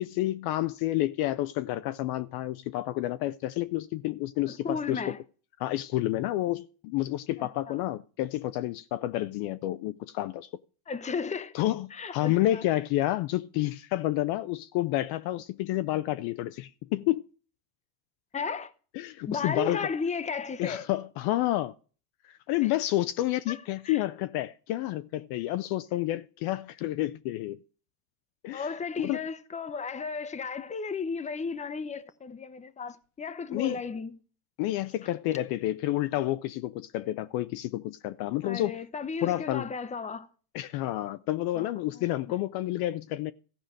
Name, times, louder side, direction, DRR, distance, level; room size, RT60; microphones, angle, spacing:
voice 1, 0.0-5.0 5.6-10.5 11.5-17.3 19.0-19.9 20.6-21.7 22.2-27.6 28.4-28.7 29.0-29.2 33.5-33.8 34.6-38.8 39.2-39.7 40.5-43.3, left 15 dB, 50° left, 0.6 m, -29 dB
voice 2, 4.5-5.2 7.4-7.8 10.9-11.6 11.9-12.6 18.3-18.7 19.3-20.8 22.6-22.7 23.5-24.0 28.5-34.2 38.4-40.3 41.5-42.0, left 5 dB, 15° left, 0.8 m, -34 dB
14.5 x 5.0 x 7.5 m
hypercardioid pair, 95°, 47 cm